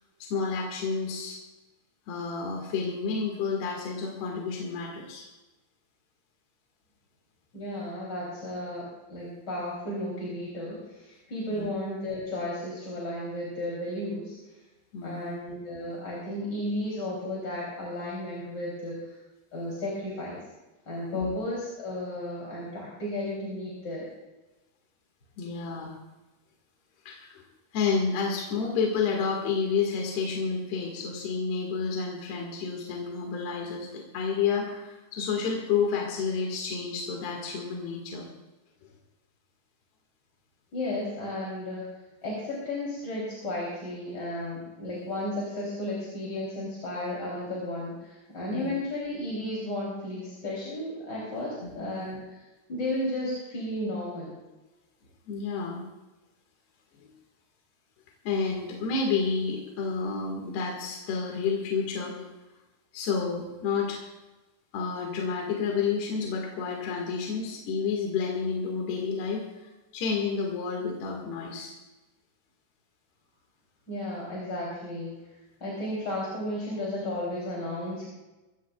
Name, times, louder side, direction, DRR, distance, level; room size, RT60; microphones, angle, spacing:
voice 1, 0.2-1.4 2.1-5.3 11.5-11.7 14.9-15.3 21.1-21.3 25.4-25.9 27.1-27.4 27.7-38.3 48.5-48.8 51.6-51.8 55.3-55.8 57.0-57.1 58.3-62.3 62.9-64.0 64.7-71.7, left 5 dB, 75° left, 0 dB, 3.9 m, -30 dB
voice 2, 7.5-14.3 15.0-19.1 19.5-20.4 20.9-24.1 40.7-41.8 42.2-52.4 52.7-54.4 73.9-75.2 75.6-78.1, left 1 dB, 25° left, -5 dB, 3.7 m, -34 dB
23.0 x 17.0 x 2.4 m, 1.1 s
omnidirectional pair, 4.7 m